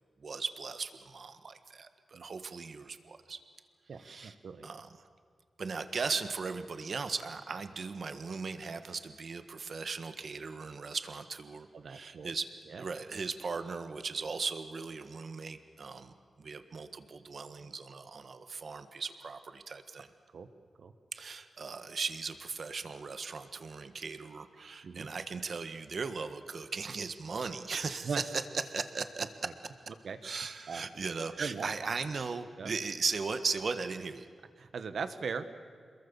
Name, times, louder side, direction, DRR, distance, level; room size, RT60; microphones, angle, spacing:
voice 1, 0.2-3.4 4.0-4.3 4.6-4.9 5.6-12.5 12.8-20.1 21.1-28.2 28.7-29.3 30.2-34.3, right 4 dB, 60° right, 10 dB, 1.6 m, -38 dB
voice 2, 3.9-4.7 11.7-12.3 12.7-12.8 20.3-20.5 20.8-20.9 24.8-25.1 28.0-28.2 30.0-30.2 30.7-30.8 31.4-31.7 32.6-32.7 34.6-35.5, right 5 dB, 75° right, 10 dB, 1.6 m, -39 dB
27.5 x 22.0 x 7.2 m, 2.1 s
wide cardioid pair, 90°, 0 cm